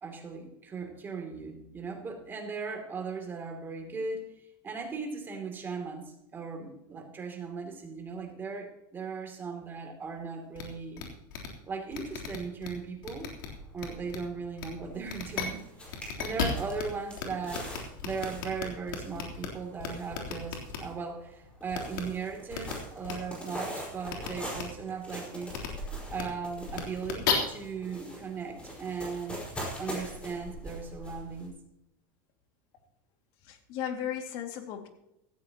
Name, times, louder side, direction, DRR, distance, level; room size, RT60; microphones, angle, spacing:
voice 1, 0.0-11.1 11.6-13.3 13.7-17.7 18.0-25.5 26.1-29.4 29.8-31.6, right 5 dB, 20° right, 3 dB, 2.8 m, -38 dB
sound 1, 10.6-10.7 11.0-11.1 11.3-11.5 11.9-12.7 13.0-13.5 13.8-14.2 14.6-14.7 15.1-15.5 15.9-16.8 17.2-17.3 17.5-19.5 19.8-20.8 21.7-22.0 22.5-22.7 23.0-23.1 24.1-24.3 24.5-24.6 25.5-25.7 26.1-26.2 26.7-27.3, left 9 dB, 85° left, 3.5 m, -34 dB
sound 2, 13.4-31.5, equal, 10° left, 4.8 m, -44 dB
voice 2, 33.4-34.9, left 9 dB, 50° left, 5 dB, 2.3 m, -36 dB
17.0 x 14.5 x 3.0 m, 0.84 s
supercardioid pair, 150°, 11 cm